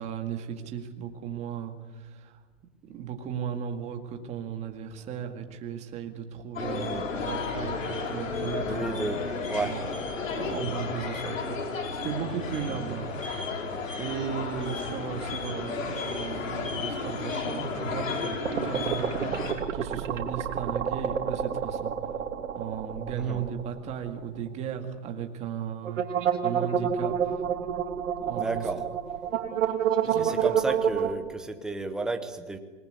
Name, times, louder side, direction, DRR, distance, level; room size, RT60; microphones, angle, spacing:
voice 1, 0.0-2.4 2.8-9.1 9.6-9.8 10.3-11.6 12.0-13.2 14.0-21.9 22.6-27.4 28.2-28.7 30.0-30.6, right 8 dB, 15° right, 5 dB, 2.0 m, -36 dB
sound 1, 6.6-19.5, left 4 dB, 90° left, 5.3 m, -33 dB
voice 2, 6.6-7.1 8.7-9.2 9.5-9.7 12.7-12.9 23.1-23.4 28.4-28.8 30.2-32.6, right 3 dB, ahead, 6 dB, 0.8 m, -33 dB
sound 2, 18.4-24.2 24.5-24.6 25.8-31.1, right 8 dB, 80° right, 3.0 m, -28 dB
27.5 x 19.5 x 9.5 m, 1.3 s
hypercardioid pair, 165°, 38 cm